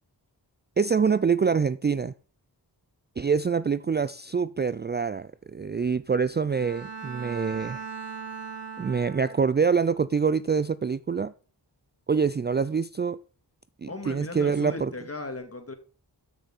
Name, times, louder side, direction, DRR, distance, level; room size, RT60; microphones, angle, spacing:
voice 1, 0.8-2.1 3.2-7.8 8.8-11.3 12.1-13.2 13.8-14.9, right 5 dB, 25° right, 0.4 m, -25 dB
Bowed string instrument, 6.5-9.7, right 5 dB, 80° right, 2.7 m, -39 dB
voice 2, 13.9-15.7, left 2 dB, 35° left, 2.5 m, -37 dB
13.5 x 6.5 x 4.1 m
cardioid pair, 50°, 41 cm